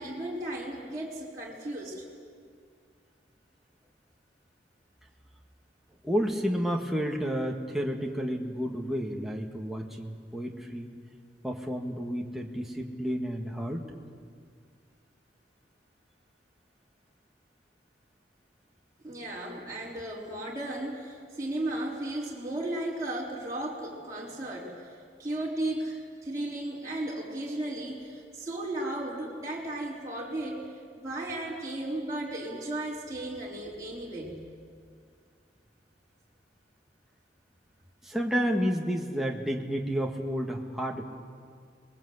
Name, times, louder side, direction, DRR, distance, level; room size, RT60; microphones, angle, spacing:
voice 1, 0.0-2.0 19.0-24.9 25.2-30.7 30.9-34.5, right 1 dB, 20° right, -6 dB, 4.0 m, -35 dB
voice 2, 6.0-10.9 11.4-13.8 38.0-41.0, equal, ahead, 0 dB, 1.9 m, -31 dB
27.0 x 21.0 x 8.2 m, 2.1 s
head